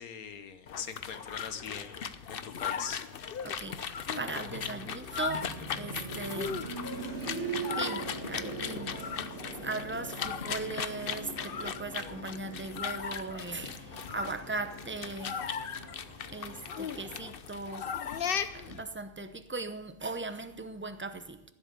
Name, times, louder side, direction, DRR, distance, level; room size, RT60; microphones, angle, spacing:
voice 1, 0.0-3.0, left 7 dB, 75° left, 1.5 m, -42 dB
sound 1, 0.7-18.8, left 7 dB, 50° left, 0.7 m, -37 dB
voice 2, 3.4-6.7 7.8-9.1 9.6-15.5 16.3-18.0 18.5-21.4, right 3 dB, 15° right, 0.4 m, -39 dB
sound 2, 5.3-16.0 17.4-17.5, right 5 dB, 55° right, 1.7 m, -42 dB
sound 3, 10.9-17.2, right 3 dB, 90° right, 2.5 m, -54 dB
14.5 x 7.9 x 8.2 m
omnidirectional pair, 1.5 m